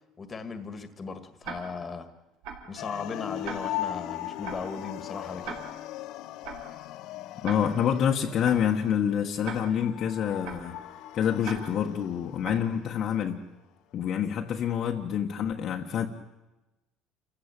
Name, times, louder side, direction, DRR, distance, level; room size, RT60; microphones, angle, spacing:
voice 1, 0.2-2.1 2.7-5.7, left 4 dB, 20° left, 10 dB, 1.9 m, -37 dB
Tick-tock, 1.4-1.9 2.4-2.8 3.4-3.9 4.4-4.8 5.4-5.9 6.4-6.8 7.4-7.9 8.4-8.8 9.4-9.9 10.4-10.8 11.4-11.9 12.4-12.8, right 5 dB, 75° right, 4.4 m, -41 dB
sound 1, 2.8-12.9, left 13 dB, 60° left, 0.9 m, -39 dB
voice 2, 7.4-10.8 11.1-13.4 13.9-16.1, left 8 dB, 40° left, 1 dB, 1.5 m, -27 dB
28.5 x 15.0 x 9.0 m, 1.0 s
cardioid pair, 155°, 0 cm